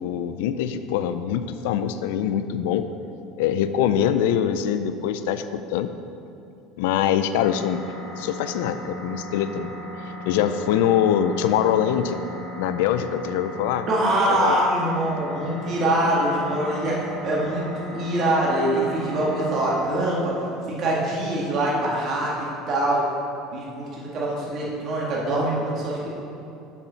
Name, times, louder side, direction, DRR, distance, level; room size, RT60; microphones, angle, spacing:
voice 1, 0.0-2.9 3.4-5.9 6.8-7.8 8.2-9.7 10.3-12.2 12.6-13.9 14.3-14.6, left 9 dB, 85° left, 11 dB, 0.4 m, -23 dB
sound 1, 7.3-19.8, left 1 dB, 5° right, 1.9 m, -37 dB
voice 2, 13.9-20.3 20.7-23.1 23.5-26.1, right 1 dB, 40° right, -5 dB, 1.9 m, -24 dB
7.1 x 5.8 x 5.7 m, 2.8 s
cardioid pair, 145°, 0 cm